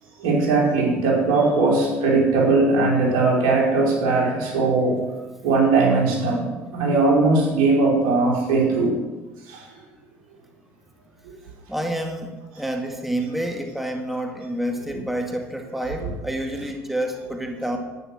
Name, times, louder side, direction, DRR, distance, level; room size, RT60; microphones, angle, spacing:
voice 1, 0.2-5.0 5.4-6.5 6.7-8.9 9.5-9.6 16.0-16.1, right 3 dB, 75° right, -3 dB, 5.0 m, -19 dB
voice 2, 11.7-17.8, right 1 dB, 5° right, 3 dB, 1.9 m, -28 dB
11.5 x 10.0 x 6.2 m, 1.2 s
hypercardioid pair, 75°, 8 cm